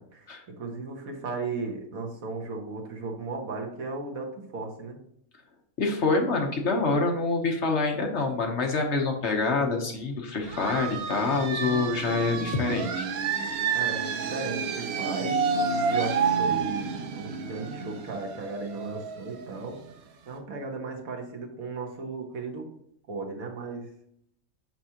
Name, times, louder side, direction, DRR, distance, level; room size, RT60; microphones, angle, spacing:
voice 1, 0.0-5.0 13.7-19.8 20.3-22.7 23.1-23.9, right 3 dB, 75° right, 2 dB, 1.6 m, -36 dB
voice 2, 5.8-13.1, left 3 dB, 55° left, 3 dB, 1.2 m, -26 dB
sound 1, 10.4-19.9, right 5 dB, 60° right, 0.8 m, -29 dB
6.1 x 5.9 x 2.8 m, 0.71 s
omnidirectional pair, 1.5 m